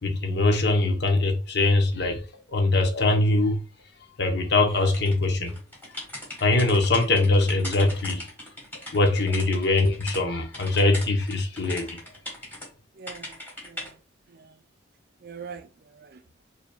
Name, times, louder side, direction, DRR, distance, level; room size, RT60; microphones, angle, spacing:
voice 1, 0.0-3.6 4.2-5.5 6.4-8.3 8.9-12.0, left 2 dB, 55° left, 0.8 m, -22 dB
sound 1, 4.9-10.2 10.5-12.7 13.1-13.9, left 1 dB, 10° left, 1.4 m, -39 dB
voice 2, 12.9-14.0 14.3-14.6 15.2-16.2, right 5 dB, 50° right, 0.4 m, -43 dB
4.9 x 2.8 x 2.2 m
head